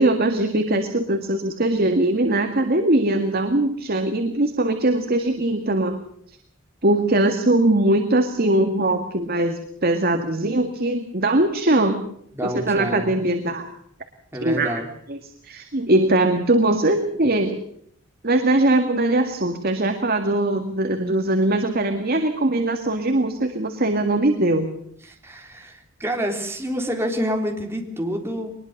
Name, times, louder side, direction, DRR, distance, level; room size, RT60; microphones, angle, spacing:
voice 1, 0.0-6.0 6.8-12.0 12.4-13.7 14.4-14.8 15.1-15.2 15.4-17.6 18.2-24.7, right 1 dB, 50° right, 6 dB, 2.0 m, -21 dB
voice 2, 12.3-13.2 14.3-14.9 25.0-28.6, equal, 15° right, 2 dB, 3.5 m, -28 dB
23.0 x 21.0 x 6.6 m, 0.64 s
head